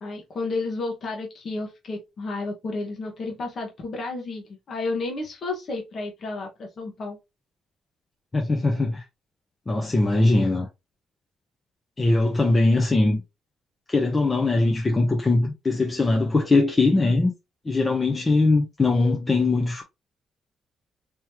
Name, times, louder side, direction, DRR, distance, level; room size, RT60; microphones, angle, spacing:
voice 1, 0.0-7.2, left 3 dB, 50° left, 1.3 m, -32 dB
voice 2, 8.3-9.0 9.7-10.7 12.0-13.2 13.9-17.3 17.6-19.8, left 2 dB, 25° left, 0.8 m, -21 dB
3.6 x 3.0 x 2.9 m
cardioid pair, 90°, 0 cm